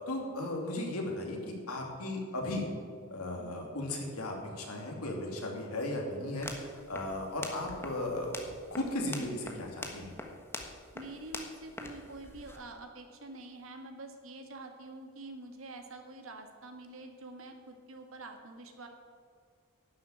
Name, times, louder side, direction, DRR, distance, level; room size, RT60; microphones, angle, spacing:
voice 1, 0.1-2.7 3.1-8.3 8.7-10.1, left 1 dB, 85° left, 0 dB, 2.9 m, -36 dB
voice 2, 3.4-3.7 10.9-18.9, right 2 dB, 65° right, 5 dB, 1.8 m, -47 dB
sound 1, 6.3-12.6, left 2 dB, 10° left, 1.3 m, -45 dB
11.5 x 7.8 x 9.0 m, 2.2 s
head